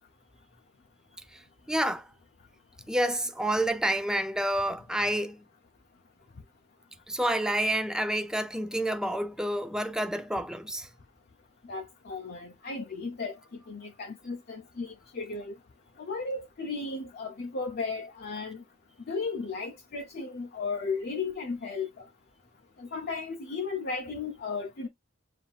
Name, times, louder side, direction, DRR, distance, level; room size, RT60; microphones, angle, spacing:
voice 1, 1.7-2.1 2.9-5.4 7.1-10.9, right 1 dB, 5° right, 0.4 m, -29 dB
voice 2, 11.6-15.5 16.0-18.6 19.1-22.1 22.8-24.9, left 4 dB, 50° left, 0.6 m, -35 dB
7.0 x 2.6 x 2.3 m
head